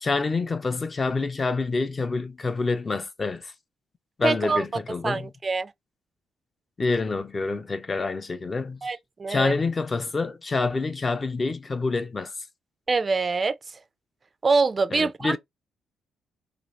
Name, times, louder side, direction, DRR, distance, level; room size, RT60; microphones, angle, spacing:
voice 1, 0.0-3.5 4.2-5.3 6.8-8.9 9.3-12.3 14.9-15.4, left 3 dB, 30° left, 0.4 m, -27 dB
voice 2, 4.2-4.6 5.0-5.7 8.8-9.5 12.9-13.6 14.4-15.4, right 4 dB, 30° right, 0.3 m, -24 dB
2.8 x 2.5 x 3.1 m
cardioid pair, 90°, 0 cm